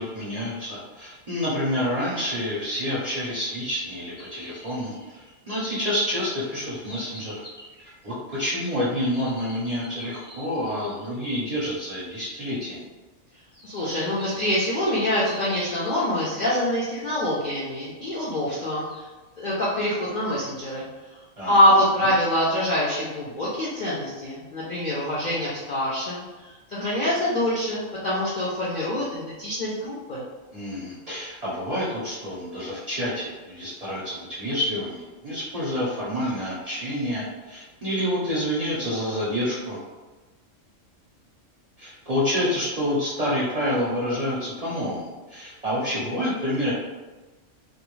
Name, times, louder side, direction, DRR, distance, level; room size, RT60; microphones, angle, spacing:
voice 1, 0.0-7.5 7.8-12.8 21.4-22.1 30.5-39.8 41.8-46.7, equal, 45° right, -8 dB, 0.5 m, -28 dB
sound 1, 4.1-11.1 12.0-12.2 13.5-17.2 17.8-17.9 18.5-19.1 19.8-20.6, left 1 dB, 25° left, 0.7 m, -47 dB
voice 2, 13.6-19.1 19.4-21.2 21.5-30.2, left 1 dB, 60° left, -7 dB, 0.5 m, -25 dB
2.3 x 2.2 x 3.1 m, 1.2 s
omnidirectional pair, 1.3 m